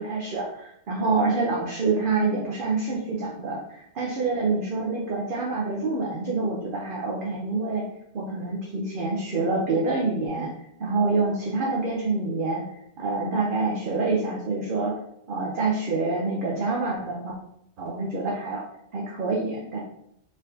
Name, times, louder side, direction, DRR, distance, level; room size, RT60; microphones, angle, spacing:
voice 1, 0.0-7.8 8.1-10.5 10.8-12.6 13.0-15.0 15.3-17.4 17.8-18.7 18.9-19.8, right 3 dB, 55° right, -2 dB, 0.8 m, -26 dB
4.2 x 3.6 x 2.7 m, 0.74 s
omnidirectional pair, 1.1 m